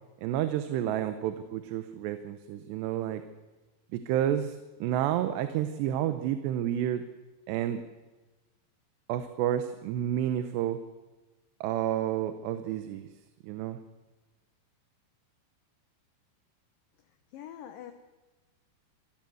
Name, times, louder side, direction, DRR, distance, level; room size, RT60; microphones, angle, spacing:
voice 1, 0.2-3.2 3.9-7.0 7.5-7.8 9.1-10.8 11.6-13.1 13.4-13.8, right 11 dB, 85° right, 10 dB, 3.1 m, -30 dB
voice 2, 17.0-17.9, left 10 dB, 65° left, 7 dB, 2.5 m, -45 dB
27.0 x 14.5 x 7.8 m, 1.2 s
omnidirectional pair, 4.8 m